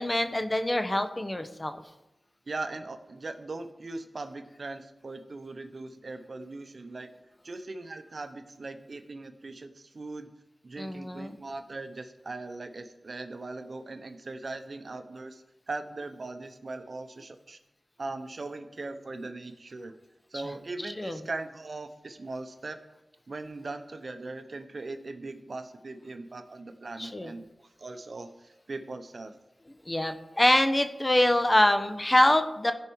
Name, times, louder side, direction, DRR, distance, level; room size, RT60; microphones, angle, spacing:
voice 1, 0.0-1.7 10.8-11.4 21.0-21.2 27.0-27.3 29.9-32.7, left 1 dB, 25° left, 8 dB, 1.1 m, -24 dB
voice 2, 2.5-7.1 7.4-10.3 10.6-17.6 18.0-19.9 20.3-22.8 23.3-27.5 27.8-29.3, right 3 dB, 65° right, 8 dB, 0.9 m, -39 dB
16.0 x 5.5 x 4.7 m, 0.98 s
cardioid pair, 45°, 0 cm